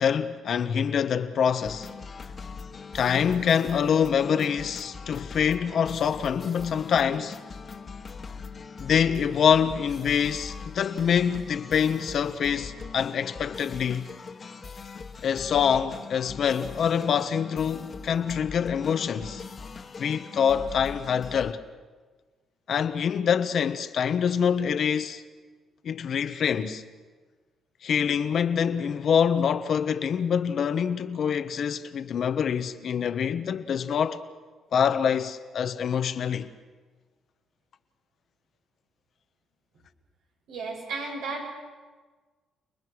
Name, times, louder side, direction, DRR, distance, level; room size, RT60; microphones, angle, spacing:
voice 1, 0.0-1.9 2.9-7.4 8.8-14.1 15.2-19.4 20.0-21.6 22.7-25.2 25.8-26.8 27.8-34.2 34.7-36.5, left 7 dB, 60° left, 1.2 m, -25 dB
sound 1, 1.6-21.5, left 5 dB, 40° left, 1.6 m, -41 dB
voice 2, 40.5-41.5, right 3 dB, 85° right, 7.1 m, -33 dB
29.5 x 20.5 x 6.3 m
cardioid pair, 90°, 0 cm